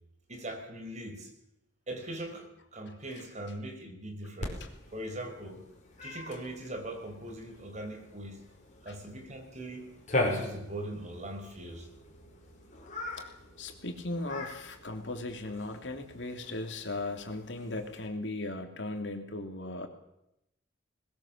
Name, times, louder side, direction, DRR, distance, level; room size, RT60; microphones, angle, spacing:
voice 1, 0.3-1.3 1.9-4.6 4.9-5.6 6.0-8.4 8.8-11.9, right 1 dB, 40° right, 4 dB, 4.8 m, -41 dB
Cat, 4.4-18.1, left 2 dB, 40° left, 5.3 m, -40 dB
voice 2, 13.2-19.9, left 2 dB, 70° left, 5 dB, 3.2 m, -37 dB
21.0 x 21.0 x 7.5 m, 0.83 s
head